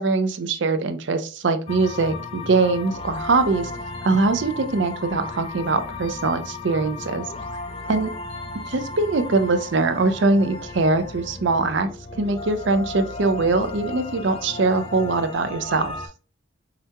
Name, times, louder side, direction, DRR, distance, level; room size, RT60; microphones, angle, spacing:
voice 1, 0.0-3.7 4.0-7.2 7.9-8.1 8.7-11.9 12.2-15.9, right 3 dB, 60° right, 9 dB, 0.5 m, -22 dB
sound 1, 1.7-16.1, left 3 dB, 25° left, 0.4 m, -35 dB
4.9 x 2.8 x 2.2 m, 0.36 s
head